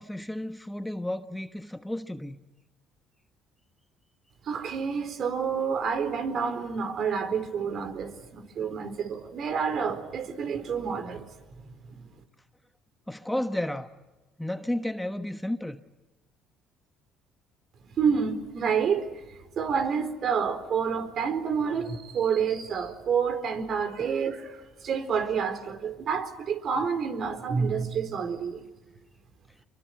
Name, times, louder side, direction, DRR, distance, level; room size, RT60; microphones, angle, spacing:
voice 1, 0.0-2.4 13.1-13.9 14.4-15.8 24.0-24.1, left 1 dB, 5° left, 1.3 m, -32 dB
voice 2, 4.4-11.2 11.6-12.1 18.0-28.6, right 6 dB, 55° right, 4.2 m, -29 dB
26.0 x 23.5 x 9.5 m
supercardioid pair, 85°, 0 cm